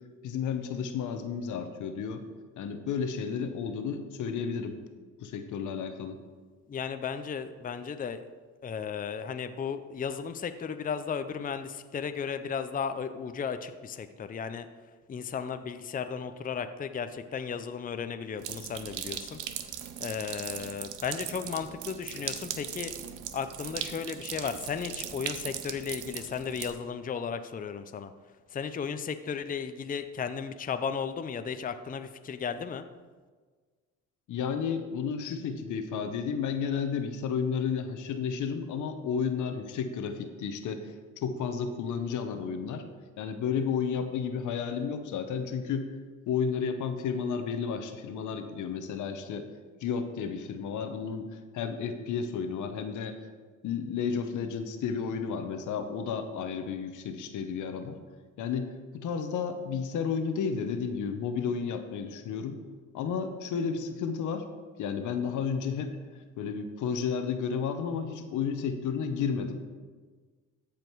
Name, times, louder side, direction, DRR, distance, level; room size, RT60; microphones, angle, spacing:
voice 1, 0.2-2.2 2.6-4.8 5.2-6.2 34.3-40.9 41.2-42.8 43.2-45.9 46.3-49.5 49.8-53.2 53.6-58.0 58.4-62.6 62.9-64.5 64.8-66.0 66.4-69.6, left 6 dB, 80° left, 8 dB, 1.0 m, -32 dB
voice 2, 6.7-8.2 8.6-14.7 15.1-19.4 20.0-22.9 23.3-28.1 28.5-32.8, left 6 dB, 30° left, 10 dB, 0.5 m, -35 dB
sound 1, 18.4-26.7, right 10 dB, 90° right, 0.7 m, -39 dB
13.5 x 5.1 x 4.6 m, 1.5 s
cardioid pair, 90°, 30 cm